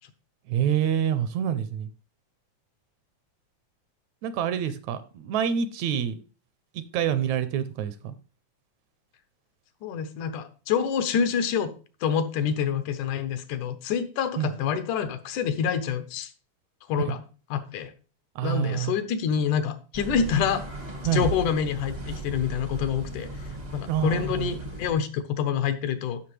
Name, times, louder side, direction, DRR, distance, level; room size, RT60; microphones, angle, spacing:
voice 1, 0.5-1.9 4.2-6.2 6.7-8.2 14.4-14.5 17.0-17.1 18.4-19.0 21.0-21.3 23.9-24.6, right 9 dB, 75° right, 13 dB, 1.8 m, -27 dB
voice 2, 9.8-11.7 12.0-16.3 16.9-17.2 17.5-17.9 18.4-20.7 21.1-23.3 23.7-26.2, left 7 dB, 90° left, 9 dB, 2.4 m, -27 dB
sound 1, 19.9-24.9, right 2 dB, 60° right, 0.4 m, -36 dB
12.5 x 6.0 x 3.3 m, 0.36 s
omnidirectional pair, 3.5 m